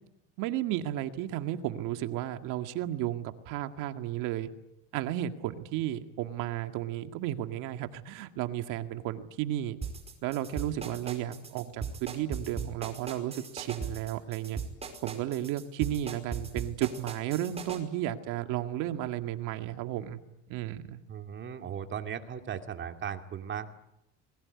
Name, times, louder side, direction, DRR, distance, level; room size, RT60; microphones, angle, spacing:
voice 1, 0.4-4.5 4.9-9.8 10.2-14.6 15.0-20.2 20.5-21.0, right 13 dB, 65° right, 8 dB, 2.0 m, -33 dB
sound 1, 9.8-17.8, right 5 dB, 20° right, 5.0 m, -38 dB
voice 2, 21.1-23.8, right 8 dB, 35° right, 6 dB, 2.4 m, -37 dB
27.5 x 22.0 x 9.7 m, 0.87 s
cardioid pair, 135°, 34 cm